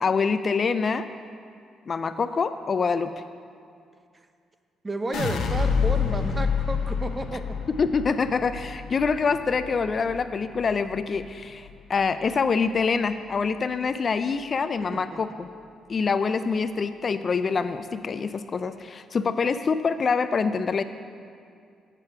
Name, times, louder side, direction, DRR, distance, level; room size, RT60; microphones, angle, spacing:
voice 1, 0.0-1.1 1.9-3.1 7.7-15.5 15.9-20.8, left 5 dB, 40° left, 11 dB, 0.3 m, -25 dB
voice 2, 4.8-7.4 14.9-15.2, right 2 dB, 25° right, 8 dB, 0.7 m, -32 dB
sound 1, 5.1-11.3 11.7-12.3, left 6 dB, 75° left, 0.7 m, -28 dB
8.2 x 5.8 x 6.9 m, 2.3 s
cardioid pair, 90°, 0 cm